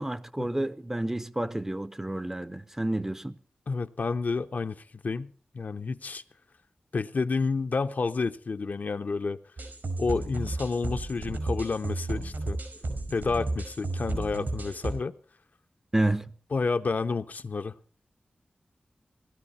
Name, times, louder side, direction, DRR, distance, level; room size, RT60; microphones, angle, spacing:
voice 1, 0.0-3.4 15.9-16.2, right 1 dB, 15° right, 0.6 m, -30 dB
voice 2, 3.7-6.2 6.9-9.4 10.0-12.6 13.1-15.1 16.5-17.7, left 4 dB, 60° left, 0.7 m, -30 dB
sound 1, 9.6-14.9, right 2 dB, 80° right, 5.3 m, -33 dB
18.5 x 13.5 x 4.2 m
wide cardioid pair, 105°, 3 cm